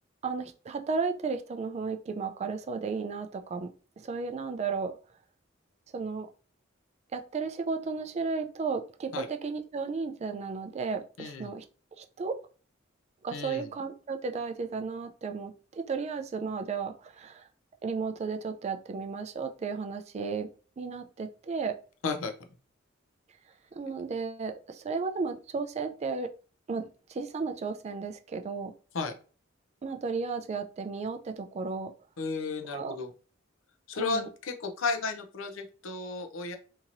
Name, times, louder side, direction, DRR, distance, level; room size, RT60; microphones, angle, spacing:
voice 1, 0.2-3.7 4.0-5.0 5.9-6.3 7.1-11.7 12.0-12.4 13.2-17.5 17.8-20.5 20.8-21.8 23.7-26.3 26.7-28.7 29.8-31.9 32.7-32.9 34.0-34.3, right 4 dB, 35° right, 7 dB, 0.3 m, -34 dB
voice 2, 11.2-11.5 13.3-13.7 22.0-22.3 28.9-29.1 32.2-33.1 33.9-36.6, left 4 dB, 85° left, 6 dB, 0.5 m, -33 dB
2.9 x 2.7 x 2.5 m, 0.37 s
head